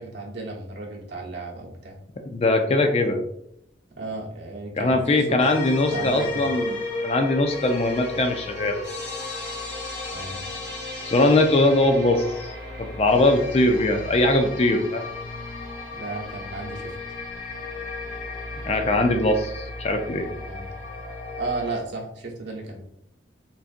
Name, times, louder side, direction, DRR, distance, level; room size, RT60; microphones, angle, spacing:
voice 1, 0.0-2.0 4.0-5.5 5.9-6.5 10.1-10.4 15.9-16.9 20.4-20.7 21.4-22.8, right 2 dB, 70° right, -2 dB, 0.8 m, -34 dB
voice 2, 2.3-3.2 4.8-6.7 7.0-8.8 11.1-12.5 12.8-15.0 18.6-20.3, left 2 dB, 35° left, 5 dB, 0.3 m, -21 dB
sound 1, 5.4-21.8, left 3 dB, 70° left, 1.4 m, -34 dB
3.9 x 2.4 x 2.5 m, 0.75 s
head